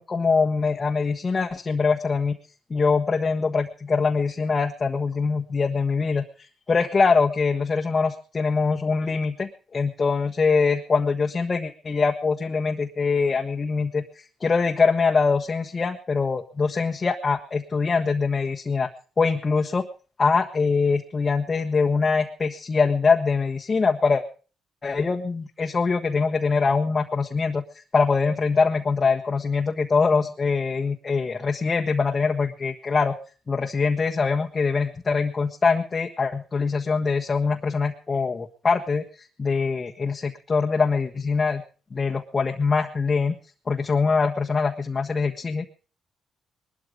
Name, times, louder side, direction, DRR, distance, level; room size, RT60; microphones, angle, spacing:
voice 1, 0.0-2.4 2.7-14.0 14.4-18.9 19.2-19.9 20.2-24.2 24.8-33.1 33.5-41.6 41.9-43.4 43.7-45.7, left 4 dB, 30° left, 2 dB, 1.4 m, -23 dB
21.0 x 12.5 x 5.1 m, 0.39 s
cardioid pair, 90°, 0 cm